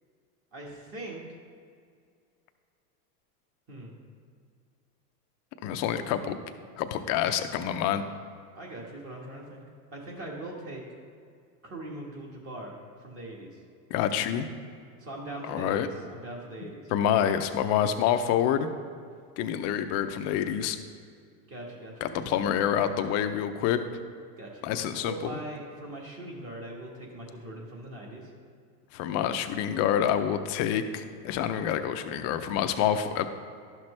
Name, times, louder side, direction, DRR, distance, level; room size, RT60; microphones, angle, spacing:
voice 1, 0.5-1.2 3.7-3.9 8.5-9.6 9.9-10.8 11.6-12.7 13.0-13.6 15.0-16.9 21.5-22.9 24.4-24.7 25.0-28.3, right 1 dB, 30° right, -2 dB, 1.5 m, -41 dB
voice 2, 5.6-6.4 6.8-8.0 13.9-14.5 15.4-15.9 16.9-18.7 19.4-20.8 22.0-23.8 24.6-25.4 28.9-33.3, left 9 dB, 35° left, 9 dB, 0.5 m, -27 dB
11.5 x 6.0 x 3.2 m, 2.2 s
supercardioid pair, 120°, 47 cm